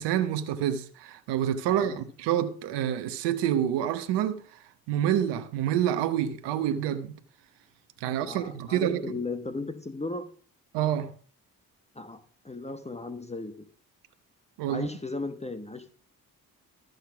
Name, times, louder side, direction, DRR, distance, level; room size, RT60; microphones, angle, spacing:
voice 1, 0.0-7.2 8.0-9.0 10.7-11.1 14.6-14.9, right 10 dB, 85° right, 0.9 m, -28 dB
voice 2, 1.7-2.0 8.0-10.3 11.9-13.7 14.7-15.9, left 3 dB, 15° left, 1.3 m, -36 dB
13.5 x 6.7 x 5.8 m
supercardioid pair, 50°, 40 cm